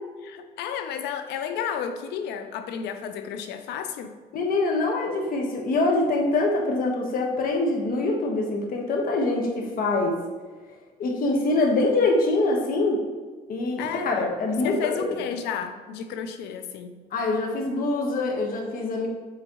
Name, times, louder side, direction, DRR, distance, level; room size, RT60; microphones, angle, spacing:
voice 1, 0.2-4.1 13.8-14.1 14.5-17.0, left 8 dB, 80° left, 8 dB, 0.6 m, -32 dB
voice 2, 4.3-10.2 11.0-13.0 13.5-15.1 17.1-19.1, left 2 dB, 60° left, 1 dB, 1.3 m, -24 dB
8.0 x 4.1 x 3.0 m, 1.4 s
cardioid pair, 110°, 17 cm